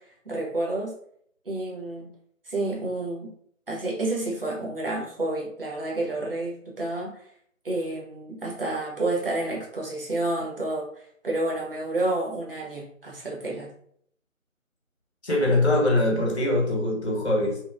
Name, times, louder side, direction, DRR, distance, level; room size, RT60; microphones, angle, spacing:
voice 1, 0.2-0.9 1.4-2.1 2.4-3.3 3.7-7.3 7.6-13.7, right 2 dB, 40° right, -3 dB, 0.9 m, -30 dB
voice 2, 15.2-17.6, left 1 dB, 50° left, -2 dB, 1.2 m, -23 dB
2.8 x 2.3 x 2.5 m, 0.64 s
figure-of-eight pair, 160°, 41 cm